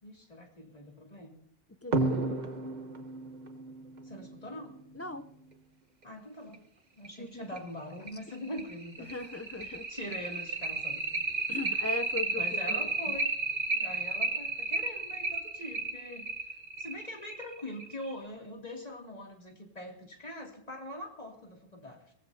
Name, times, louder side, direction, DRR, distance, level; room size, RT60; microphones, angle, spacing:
voice 1, 0.0-1.4 4.0-4.7 6.0-6.7 7.0-9.1 9.6-11.2 11.5-11.9 12.2-13.3 13.6-22.1, left 1 dB, 40° left, 1 dB, 2.8 m, -43 dB
voice 2, 1.8-2.4 5.0-5.3 7.2-7.5 9.0-9.9 11.5-12.9, left 3 dB, 15° left, 10 dB, 0.6 m, -38 dB
sound 1, 1.9-5.1 6.5-6.6 7.0-7.1 7.6-7.7 8.1-18.1, right 3 dB, 45° right, 1.1 m, -33 dB
23.0 x 16.5 x 2.8 m, 0.70 s
omnidirectional pair, 1.0 m